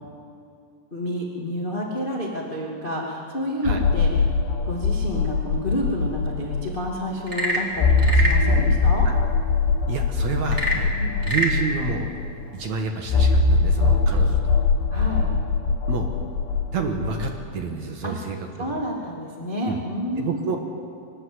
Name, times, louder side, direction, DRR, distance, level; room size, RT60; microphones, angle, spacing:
voice 1, 0.9-4.1 4.6-9.1 11.0-11.1 14.9-15.2 18.0-18.1 18.6-20.5, equal, 30° left, -2 dB, 0.9 m, -29 dB
sound 1, 3.7-6.9 7.2-7.3 7.8-12.3 13.1-17.4, left 4 dB, 75° left, 4.0 m, -22 dB
Frog / Percussion / Wood, 7.2-8.5 10.4-11.6, right 1 dB, 10° right, 1.1 m, -25 dB
voice 2, 9.9-10.9 11.2-12.1 12.5-14.4 15.9-16.1 16.7-18.8 19.6-19.8 20.2-20.6, right 5 dB, 75° right, 3 dB, 1.7 m, -29 dB
23.5 x 20.0 x 8.0 m, 2.4 s
omnidirectional pair, 5.6 m